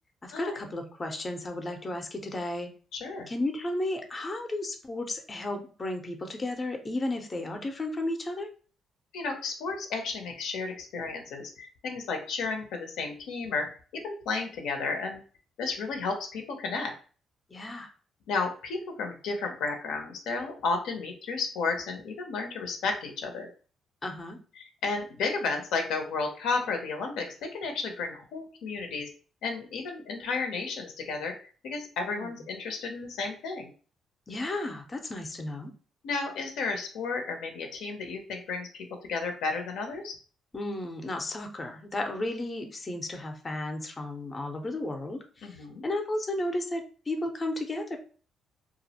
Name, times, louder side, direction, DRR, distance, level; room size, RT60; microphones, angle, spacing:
voice 1, 0.2-2.7 3.3-8.5 17.5-17.9 24.0-24.4 32.1-32.4 34.3-35.7 40.5-48.0, left 1 dB, 30° left, 5 dB, 0.5 m, -33 dB
voice 2, 2.9-3.3 9.1-13.7 13.9-15.2 15.6-16.9 18.3-23.5 24.6-29.1 29.4-31.3 31.6-33.7 36.0-40.2 45.4-45.8, left 4 dB, 85° left, 4 dB, 0.5 m, -33 dB
2.3 x 2.0 x 2.7 m, 0.39 s
cardioid pair, 90°, 0 cm